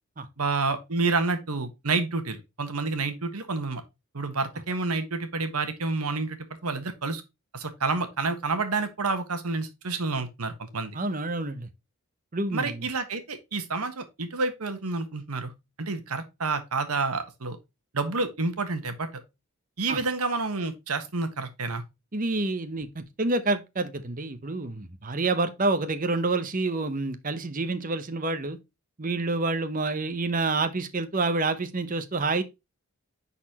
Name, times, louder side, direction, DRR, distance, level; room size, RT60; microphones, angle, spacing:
voice 1, 0.4-3.8 4.1-7.2 7.5-10.9 12.5-15.5 15.8-17.6 17.9-19.2 19.8-21.8, right 3 dB, 90° right, 1.4 m, -29 dB
voice 2, 10.9-11.7 12.3-12.9 19.9-20.0 22.1-28.6 29.0-32.4, right 3 dB, 40° right, 0.8 m, -28 dB
9.8 x 4.3 x 2.9 m
head